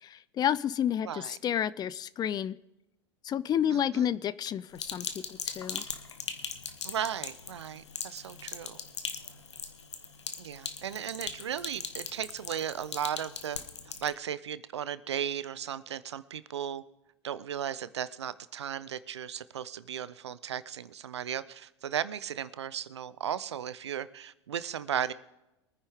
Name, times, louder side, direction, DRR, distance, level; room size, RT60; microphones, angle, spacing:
voice 1, 0.0-2.6 3.2-5.8, left 9 dB, 30° left, 19 dB, 0.5 m, -30 dB
voice 2, 1.1-1.4 3.7-4.1 6.8-8.8 10.4-13.6 14.0-16.8 17.2-25.1, right 9 dB, 80° right, 16 dB, 0.7 m, -36 dB
Sink (filling or washing), 4.7-14.1, left 5 dB, 85° left, 1.2 m, -40 dB
23.5 x 9.7 x 3.6 m, 0.91 s
hypercardioid pair, 90°, 14 cm